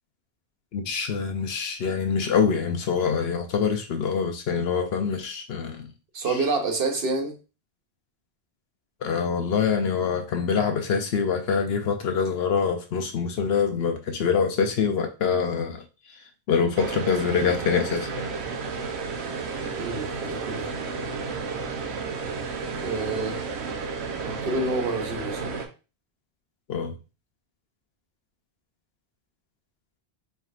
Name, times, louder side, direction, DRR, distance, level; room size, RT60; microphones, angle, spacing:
voice 1, 0.7-5.9 6.2-6.4 9.0-18.3 26.7-27.0, left 6 dB, 75° left, 5 dB, 0.8 m, -25 dB
voice 2, 6.1-7.4 19.8-20.7 22.8-23.5 24.2-25.5, right 3 dB, 65° right, 3 dB, 1.1 m, -28 dB
sound 1, 16.8-25.7, right 4 dB, 90° right, 1.0 m, -32 dB
4.4 x 3.4 x 2.4 m, 0.31 s
omnidirectional pair, 1.1 m